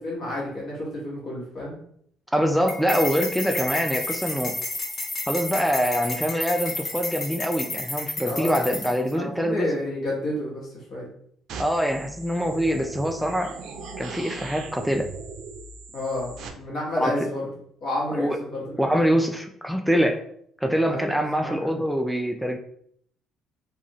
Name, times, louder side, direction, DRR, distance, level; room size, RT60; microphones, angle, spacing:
voice 1, 0.0-1.7 8.2-8.6 9.1-11.1 15.9-17.5 17.8-19.1 20.9-21.8, left 1 dB, 60° left, -6 dB, 1.2 m, -31 dB
voice 2, 2.3-4.6 5.3-9.7 11.6-13.6 14.0-15.1 17.0-17.3 18.2-18.4 18.8-20.2 20.6-22.6, equal, ahead, 4 dB, 0.3 m, -24 dB
sound 1, 2.7-9.1, left 2 dB, 40° left, 0.8 m, -31 dB
sound 2, 11.5-16.5, right 4 dB, 70° right, 0.4 m, -39 dB
2.4 x 2.4 x 2.9 m, 0.66 s
supercardioid pair, 60°, 0 cm